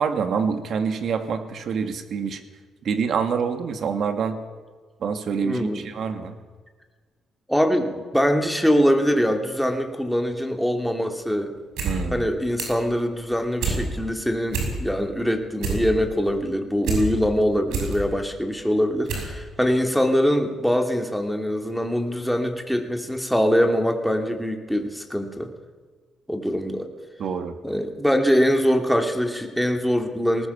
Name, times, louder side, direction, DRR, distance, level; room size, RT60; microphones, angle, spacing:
voice 1, 0.0-2.4 2.8-4.4 5.0-6.4 11.8-12.3 27.2-27.5, right 6 dB, 60° right, 8 dB, 2.1 m, -26 dB
voice 2, 5.4-5.9 7.5-11.5 12.1-25.5 26.3-26.9 27.6-30.5, equal, ahead, 4 dB, 2.6 m, -23 dB
sound 1, 11.6-12.0 12.2-12.9 13.2-13.8 14.2-14.3 14.5-15.1 15.4-17.0 17.4-17.9 18.5-18.6 19.1-19.3 19.6-19.7, right 5 dB, 90° right, 6.2 m, -27 dB
20.0 x 19.0 x 7.2 m, 1.5 s
cardioid pair, 90°, 0 cm